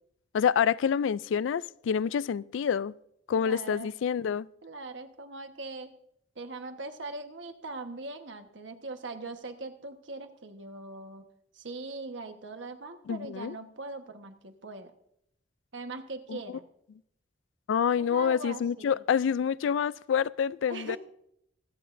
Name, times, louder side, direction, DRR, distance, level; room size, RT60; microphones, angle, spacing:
voice 1, 0.3-2.9 3.3-4.5 13.1-13.6 16.3-16.4 17.7-21.0, left 7 dB, 80° left, 0.3 m, -27 dB
voice 2, 3.3-3.9 4.6-5.9 6.4-11.2 11.5-14.9 15.7-16.6 18.0-19.0 20.7-21.0, right 3 dB, 75° right, 1.2 m, -41 dB
25.0 x 8.7 x 2.6 m
head